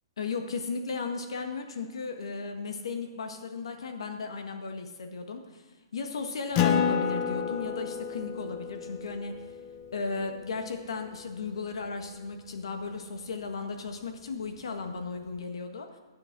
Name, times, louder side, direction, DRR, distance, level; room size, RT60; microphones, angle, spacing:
voice 1, 0.2-5.6 5.9-9.4 9.9-15.9, left 4 dB, 85° left, 5 dB, 1.7 m, -35 dB
Acoustic guitar, 6.5-11.5, left 7 dB, 25° left, 0.7 m, -31 dB
13.0 x 7.6 x 6.1 m, 1.3 s
hypercardioid pair, 175°, 3 cm